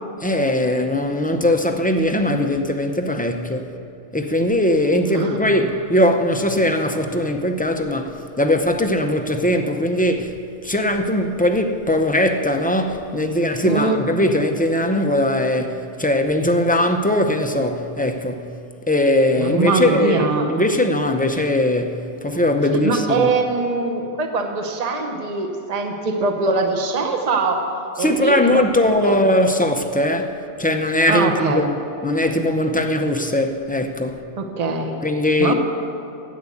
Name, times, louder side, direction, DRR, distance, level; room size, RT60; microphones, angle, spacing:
voice 1, 0.2-3.7 4.1-10.3 10.6-18.5 18.9-23.3 28.0-31.7 32.0-34.2 35.0-35.5, left 1 dB, 10° left, 0.4 m, -20 dB
voice 2, 5.0-5.6 13.6-14.0 19.4-20.5 22.8-27.6 28.0-28.6 28.9-29.2 31.1-31.7 34.4-34.9 35.4-35.5, right 3 dB, 35° right, 1.0 m, -22 dB
10.5 x 8.3 x 8.4 m
omnidirectional pair, 1.2 m